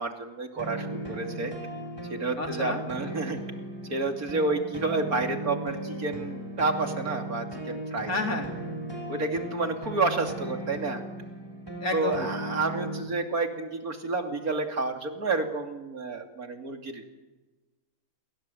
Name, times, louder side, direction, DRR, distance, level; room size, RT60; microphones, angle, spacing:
voice 1, 0.0-1.5 2.1-3.4 3.9-8.1 9.1-11.0 11.9-17.0, right 3 dB, 75° right, 4 dB, 3.3 m, -30 dB
sound 1, 0.6-13.0, right 1 dB, 15° right, 5.8 m, -37 dB
voice 2, 2.4-2.8 8.1-8.5 11.8-12.3, left 3 dB, 70° left, 3 dB, 4.2 m, -30 dB
29.5 x 22.5 x 8.0 m, 1.1 s
omnidirectional pair, 1.6 m